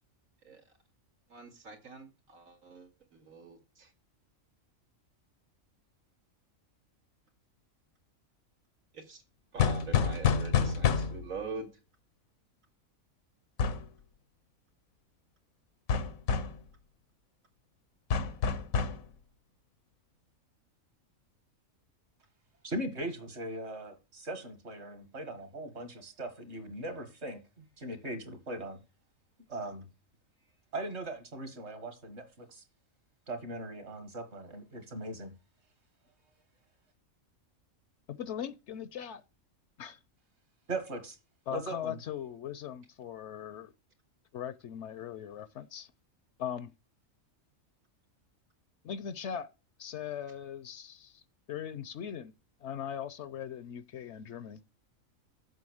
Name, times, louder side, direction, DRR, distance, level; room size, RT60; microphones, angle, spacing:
voice 1, 1.3-3.9 8.9-9.2 9.5-11.7, right 4 dB, 80° right, 2.4 m, -44 dB
sound 1, 9.6-11.4 13.6-13.9 15.9-16.6 18.1-19.1, left 6 dB, 90° left, 1.3 m, -28 dB
voice 2, 22.6-28.8 29.5-29.9 30.7-32.6 33.3-35.3 40.7-41.2 41.5-42.0, right 1 dB, 55° right, 2.0 m, -39 dB
voice 3, 38.1-39.2 39.8-40.0 41.5-43.7 44.3-45.9 46.4-46.7 48.8-49.5 49.8-51.2 51.5-52.3 52.6-54.6, left 9 dB, 65° left, 0.8 m, -39 dB
7.7 x 5.8 x 6.3 m
omnidirectional pair, 1.4 m